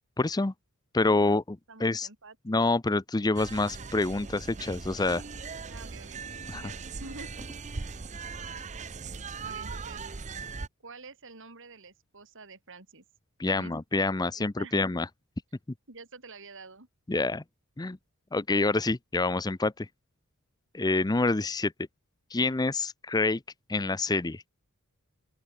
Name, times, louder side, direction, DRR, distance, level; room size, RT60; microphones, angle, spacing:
voice 1, 0.2-0.5 0.9-2.1 2.5-5.2 6.5-6.6 13.4-15.1 17.1-17.4 17.8-18.0 18.3-19.9 20.7-21.7 22.3-23.4 23.7-24.4, left 3 dB, 20° left, 0.6 m, -27 dB
voice 2, 1.7-2.4 5.7-6.2 6.5-7.3 7.8-8.0 9.4-10.0 10.8-13.0 13.5-13.7 14.3-15.0 15.9-16.9, right 3 dB, 60° right, 3.9 m, -48 dB
sound 1, 3.4-10.7, right 4 dB, 35° right, 0.7 m, -39 dB
open air
head